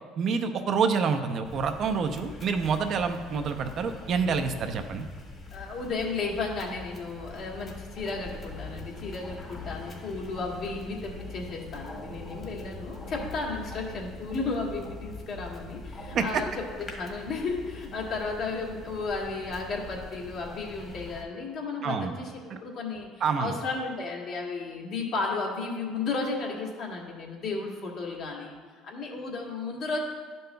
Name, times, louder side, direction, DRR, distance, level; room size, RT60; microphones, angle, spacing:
voice 1, 0.2-5.1 16.1-16.4 21.8-22.2 22.5-22.6 23.2-23.6, right 5 dB, 55° right, 7 dB, 0.6 m, -27 dB
sound 1, 1.4-21.2, left 3 dB, 35° left, 1.5 m, -43 dB
voice 2, 5.5-23.1 23.4-28.6 28.8-30.0, left 3 dB, 60° left, -2 dB, 1.5 m, -34 dB
11.0 x 5.3 x 2.3 m, 1.5 s
supercardioid pair, 85°, 0 cm